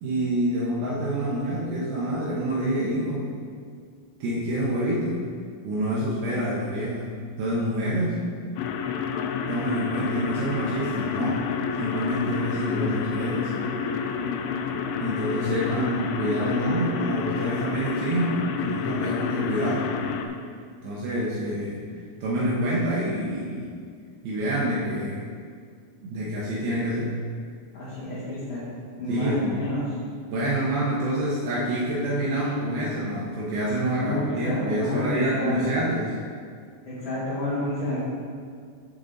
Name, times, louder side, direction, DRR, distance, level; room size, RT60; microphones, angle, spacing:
voice 1, 0.0-3.2 4.2-5.2 5.6-7.1 7.4-8.2 9.5-11.4 11.8-13.5 15.0-20.1 20.8-21.8 22.2-23.9 24.2-25.3 26.0-27.1 29.1-29.6 30.3-36.1, right 1 dB, 75° right, -7 dB, 3.1 m, -27 dB
sound 1, 8.6-20.3, left 6 dB, 80° left, 2.3 m, -29 dB
voice 2, 27.7-28.7 29.0-29.8 33.9-35.7 36.9-38.0, left 1 dB, 45° left, -12 dB, 3.0 m, -29 dB
9.7 x 7.2 x 4.0 m, 2.1 s
omnidirectional pair, 4.5 m